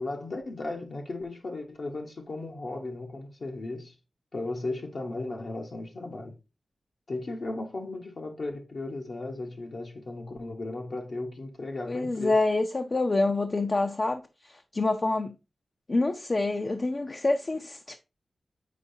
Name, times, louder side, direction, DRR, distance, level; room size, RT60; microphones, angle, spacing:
voice 1, 0.0-3.9 4.3-6.4 7.1-12.4, left 2 dB, 60° left, 1.0 m, -36 dB
voice 2, 11.8-15.3 15.9-18.0, left 2 dB, 40° left, 0.5 m, -27 dB
8.3 x 4.6 x 2.7 m
wide cardioid pair, 85°, 0 cm